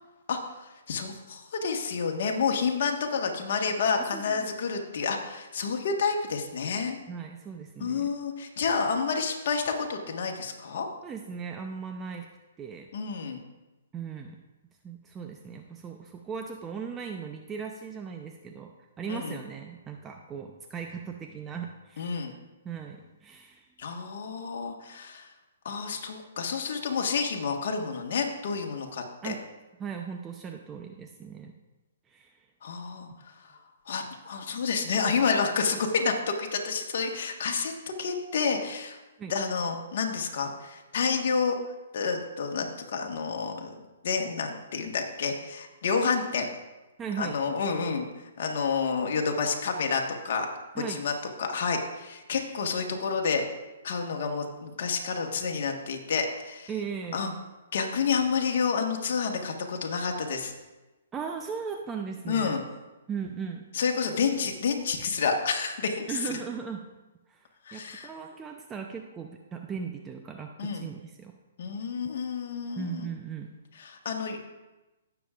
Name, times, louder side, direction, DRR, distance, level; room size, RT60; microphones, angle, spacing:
voice 1, 0.3-7.0 7.8-10.9 12.9-13.4 19.1-19.4 22.0-22.3 23.8-25.3 25.6-29.3 32.6-33.1 33.9-39.0 39.3-41.5 41.9-46.5 47.2-48.1 48.4-50.5 50.8-53.4 53.8-56.7 57.1-57.3 57.7-60.5 62.3-62.6 63.7-66.4 67.7-68.1 70.6-70.9 71.6-73.1 73.8-74.4, left 5 dB, 60° left, 2 dB, 1.4 m, -29 dB
voice 2, 4.0-4.5 7.1-8.1 11.0-12.3 12.6-12.9 13.9-14.4 14.8-18.7 19.0-22.2 22.6-23.7 29.2-29.4 29.8-31.5 32.1-32.3 39.2-39.3 47.0-47.4 50.8-51.0 56.7-57.2 61.1-62.6 63.1-63.6 66.1-66.8 67.3-71.3 72.8-73.5, right 6 dB, 15° right, 3 dB, 0.6 m, -38 dB
17.5 x 7.0 x 2.5 m, 1.1 s
hypercardioid pair, 135°, 0 cm